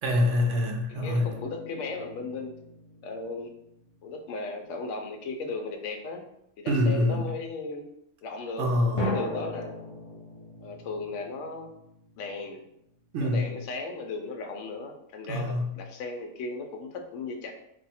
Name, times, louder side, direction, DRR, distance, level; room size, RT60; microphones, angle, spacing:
voice 1, 0.0-1.3 6.7-7.3 8.6-9.1 13.1-13.5 15.3-15.7, left 1 dB, 65° right, 2 dB, 0.9 m, -25 dB
voice 2, 0.9-2.5 3.0-3.5 4.0-6.3 6.6-7.9 8.2-8.7 9.0-9.8 10.6-11.7 12.2-12.6 13.2-17.5, left 3 dB, 65° left, 4 dB, 0.8 m, -36 dB
sound 1, 0.9-4.0 9.0-12.6, left 1 dB, 40° left, 0.5 m, -38 dB
2.7 x 2.3 x 4.1 m, 0.78 s
omnidirectional pair, 1.6 m